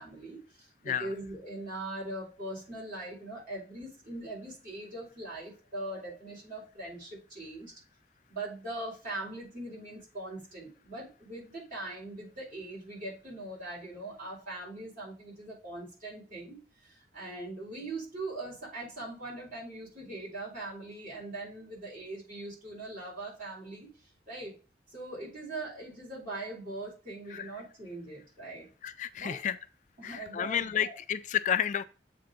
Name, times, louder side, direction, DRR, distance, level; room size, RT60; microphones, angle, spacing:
voice 1, 0.0-7.7 8.3-24.5 24.9-28.7 29.2-29.4 30.0-31.0, right 2 dB, 50° right, 4.1 m, -41 dB
voice 2, 28.8-29.6 30.0-31.8, left 9 dB, 45° left, 0.3 m, -31 dB
7.7 x 3.5 x 5.1 m
head